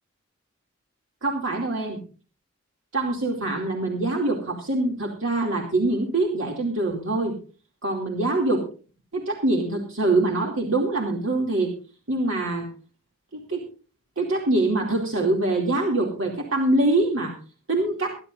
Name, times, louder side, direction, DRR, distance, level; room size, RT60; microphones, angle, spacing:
voice 1, 1.2-2.0 2.9-7.3 7.8-8.7 9.1-11.7 12.1-12.7 13.3-13.7 14.2-17.3 17.7-18.2, right 2 dB, 70° right, 0 dB, 2.6 m, -24 dB
24.5 x 11.0 x 2.6 m, 0.36 s
head